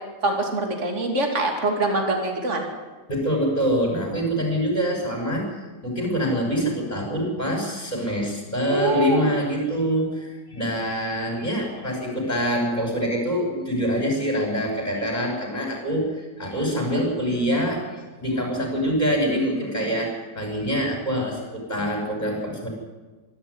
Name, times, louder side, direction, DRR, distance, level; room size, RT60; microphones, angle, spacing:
voice 1, 0.2-2.7 8.7-9.3, right 2 dB, 45° right, 3 dB, 3.1 m, -24 dB
voice 2, 3.1-22.7, equal, 25° left, 0 dB, 6.6 m, -25 dB
25.5 x 12.5 x 9.8 m, 1.3 s
omnidirectional pair, 1.8 m